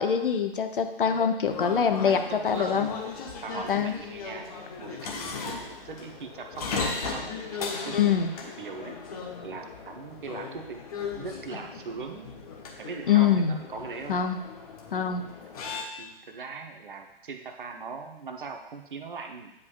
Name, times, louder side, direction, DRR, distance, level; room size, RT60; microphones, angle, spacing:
voice 1, 0.0-2.9 3.7-3.9 7.9-8.3 13.1-13.6 14.1-14.4 14.9-15.2, left 7 dB, 60° left, 7 dB, 0.7 m, -24 dB
sound 1, 1.4-15.8, left 5 dB, 40° left, 1.1 m, -37 dB
voice 2, 2.1-3.0 3.4-4.5 4.8-9.0 9.4-10.9 11.2-12.4 12.8-14.2 15.9-19.5, right 5 dB, 60° right, 5 dB, 0.9 m, -40 dB
9.5 x 5.0 x 2.4 m, 0.89 s
figure-of-eight pair, 125°, 30 cm